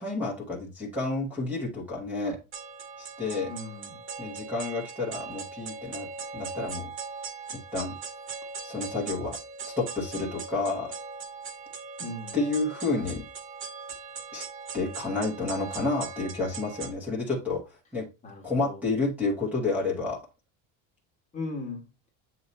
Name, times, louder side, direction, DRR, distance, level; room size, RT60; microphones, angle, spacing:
voice 1, 0.0-2.4 3.0-3.5 4.2-6.1 6.3-6.9 7.7-7.9 8.6-9.4 9.6-10.9 12.3-13.3 14.3-14.5 14.7-17.6 17.9-18.0 18.4-20.2, left 3 dB, 5° right, -7 dB, 1.1 m, -30 dB
sound 1, 2.5-16.9, right 5 dB, 35° right, 0.8 m, -40 dB
voice 2, 3.5-4.0 12.0-12.4 18.2-18.8 21.3-21.9, left 2 dB, 20° left, 1 dB, 1.3 m, -37 dB
7.9 x 2.9 x 4.1 m, 0.29 s
cardioid pair, 180°, 38 cm